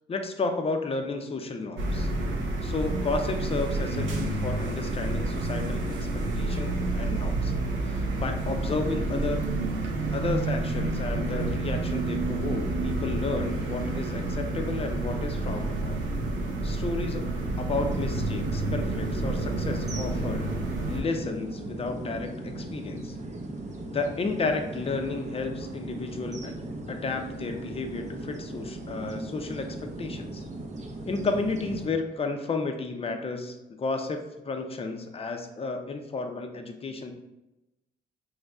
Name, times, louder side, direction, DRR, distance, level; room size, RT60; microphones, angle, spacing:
voice 1, 0.1-2.1 2.6-6.1 6.4-7.5 7.8-9.4 10.1-16.0 16.6-17.3 17.6-20.5 20.9-23.2 23.9-26.6 26.9-30.4 31.1-37.1, left 3 dB, 30° left, 5 dB, 0.6 m, -32 dB
sound 1, 1.8-21.0, right 2 dB, 70° right, 0.7 m, -29 dB
sound 2, 17.7-31.9, right 2 dB, 35° right, 0.7 m, -38 dB
5.2 x 3.2 x 2.3 m, 0.96 s
cardioid pair, 90°, 20 cm